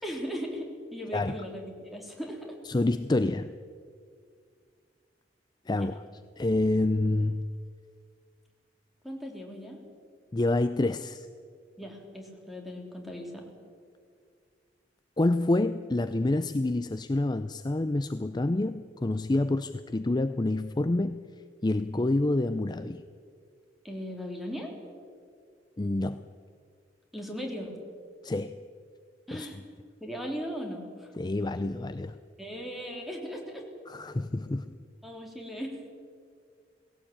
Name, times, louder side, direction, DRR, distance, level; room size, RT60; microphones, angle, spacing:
voice 1, 0.0-2.5 9.0-9.8 11.8-13.5 23.8-24.7 27.1-27.7 29.3-29.6 30.0-31.1 32.4-33.7 35.0-35.8, equal, ahead, 1 dB, 3.3 m, -38 dB
voice 2, 2.7-3.5 5.7-6.0 6.4-7.5 10.3-11.3 15.2-21.2 21.6-23.0 25.8-26.2 28.2-28.6 29.3-29.5 31.2-32.2 33.9-34.8, left 2 dB, 25° left, 11 dB, 0.5 m, -27 dB
19.0 x 17.0 x 8.7 m, 2.1 s
head